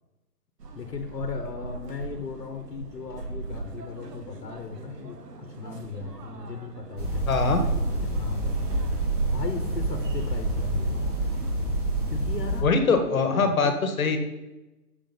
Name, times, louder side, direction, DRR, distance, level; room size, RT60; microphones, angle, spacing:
sound 1, 0.6-11.5, right 3 dB, 80° right, 1.1 m, -41 dB
voice 1, 0.7-8.9 9.3-11.5 12.1-12.7 13.3-13.8, left 6 dB, 85° left, 5 dB, 1.0 m, -37 dB
sound 2, 7.0-12.6, right 2 dB, 25° right, 0.9 m, -27 dB
voice 2, 7.3-7.6 12.6-14.2, left 4 dB, 60° left, 7 dB, 1.2 m, -22 dB
6.6 x 3.9 x 5.2 m, 1.0 s
hypercardioid pair, 160°, 48 cm